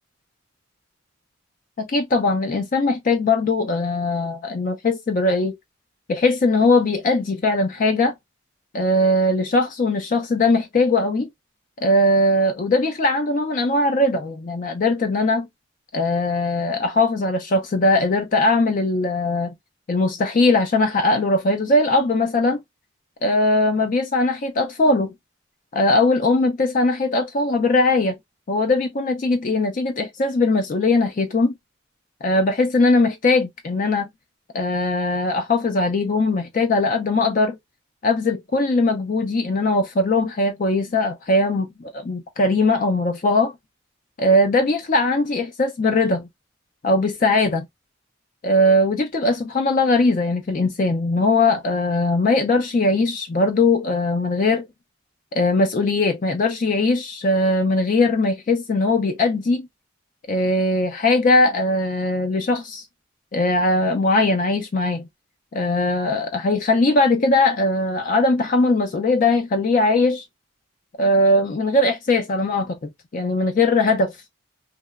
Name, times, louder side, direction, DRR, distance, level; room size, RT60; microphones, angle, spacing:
voice 1, 1.8-5.5 6.1-8.1 8.7-11.3 11.8-15.5 15.9-19.5 19.9-22.6 23.2-25.1 25.7-28.2 28.5-31.5 32.2-34.1 34.5-37.6 38.0-43.5 44.2-46.3 46.8-47.7 48.4-54.6 55.3-59.7 60.3-62.8 63.3-65.0 65.5-70.2 71.0-74.1, left 2 dB, 40° left, 0.4 m, -20 dB
2.8 x 2.1 x 2.2 m
head